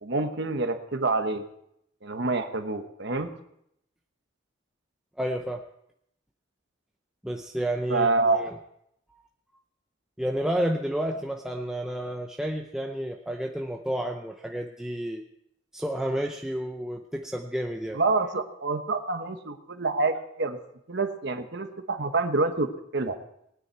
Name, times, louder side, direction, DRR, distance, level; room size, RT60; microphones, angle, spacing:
voice 1, 0.0-1.5 2.0-3.3 7.9-8.6 17.9-20.6 20.9-22.7 22.9-23.2, right 3 dB, 55° right, 7 dB, 1.1 m, -27 dB
voice 2, 5.2-5.6 7.2-8.6 10.2-15.2 15.7-18.0, right 1 dB, 5° right, 2 dB, 0.6 m, -30 dB
19.0 x 9.6 x 4.6 m, 0.76 s
head